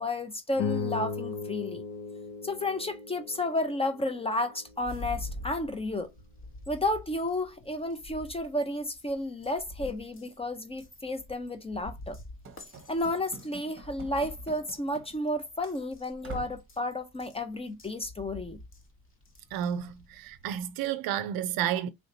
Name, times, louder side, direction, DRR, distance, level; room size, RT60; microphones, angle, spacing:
voice 1, 0.0-1.8 2.4-6.1 6.7-12.2 12.9-18.6, left 1 dB, 15° left, 0.6 m, -32 dB
sound 1, 0.5-5.1, left 5 dB, 75° left, 1.0 m, -37 dB
sound 2, 4.8-20.6, left 1 dB, 30° left, 1.0 m, -46 dB
Run / Slam, 12.4-15.3 15.6-15.8 16.2-16.7, right 4 dB, 30° right, 0.9 m, -46 dB
voice 2, 19.5-21.9, right 10 dB, 60° right, 0.6 m, -31 dB
3.2 x 2.8 x 2.7 m
supercardioid pair, 85°, 41 cm